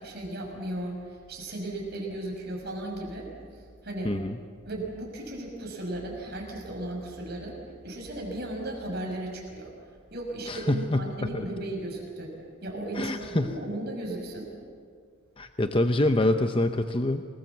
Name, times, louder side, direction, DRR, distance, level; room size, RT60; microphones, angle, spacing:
voice 1, 0.0-3.3 3.8-4.1 4.6-9.7 10.1-12.3 12.6-14.5, right 1 dB, 50° right, 0 dB, 6.0 m, -35 dB
voice 2, 4.0-4.4 10.5-11.5 12.9-13.6 15.4-17.3, left 1 dB, 25° left, 7 dB, 0.7 m, -26 dB
28.0 x 20.0 x 7.3 m, 2.1 s
head